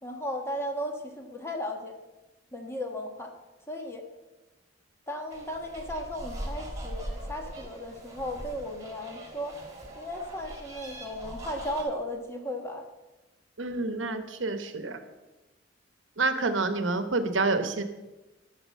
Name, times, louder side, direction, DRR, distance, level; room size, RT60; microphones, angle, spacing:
voice 1, 0.0-1.9 2.5-3.3 3.7-4.0 5.1-9.6 9.9-12.8, equal, 15° left, 3 dB, 1.4 m, -35 dB
sound 1, 5.3-11.8, right 1 dB, 20° right, 2.3 m, -41 dB
voice 2, 13.6-15.0 16.2-17.8, right 3 dB, 80° right, 9 dB, 1.1 m, -28 dB
13.0 x 6.0 x 6.5 m, 1.1 s
head